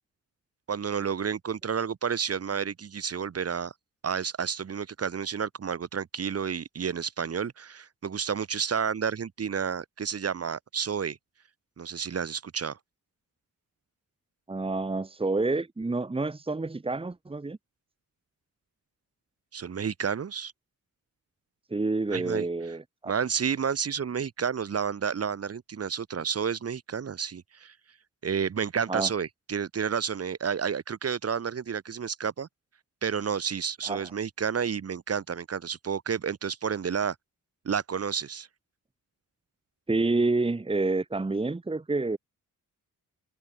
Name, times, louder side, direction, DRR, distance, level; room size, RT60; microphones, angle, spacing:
voice 1, 0.7-3.7 4.0-11.2 11.8-12.8 19.5-20.5 22.1-22.5 23.1-27.7 28.2-32.5 33.0-37.2 37.6-38.5, right 7 dB, 45° right, 4.0 m, -30 dB
voice 2, 14.5-17.6 21.7-23.1 28.9-29.1 33.8-34.1 39.9-42.2, right 3 dB, 15° right, 2.3 m, -28 dB
wide cardioid pair, 165°, 34 cm